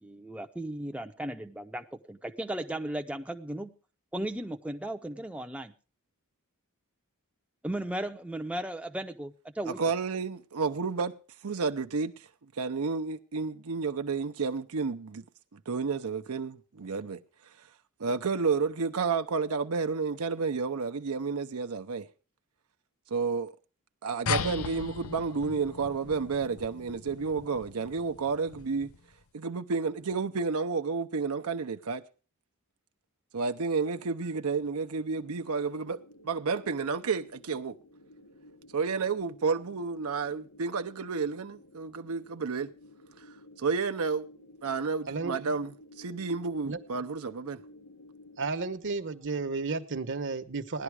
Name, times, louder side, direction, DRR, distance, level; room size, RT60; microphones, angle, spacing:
voice 1, 0.0-3.7 4.1-5.7 7.6-9.8, right 1 dB, 5° right, 0.6 m, -36 dB
voice 2, 9.7-11.1 11.4-12.3 12.6-15.2 15.5-17.2 18.0-22.1 23.1-23.5 24.0-28.9 29.3-32.0 33.3-37.8 38.7-42.7 43.2-43.3 43.6-44.3 44.6-45.7 46.0-47.6, right 4 dB, 75° right, 0.7 m, -31 dB
sound 1, 24.3-29.1, left 5 dB, 70° left, 0.6 m, -37 dB
sound 2, 35.0-48.5, left 1 dB, 90° left, 2.0 m, -54 dB
voice 3, 48.4-50.8, right 4 dB, 55° right, 1.1 m, -32 dB
17.0 x 11.0 x 4.8 m
head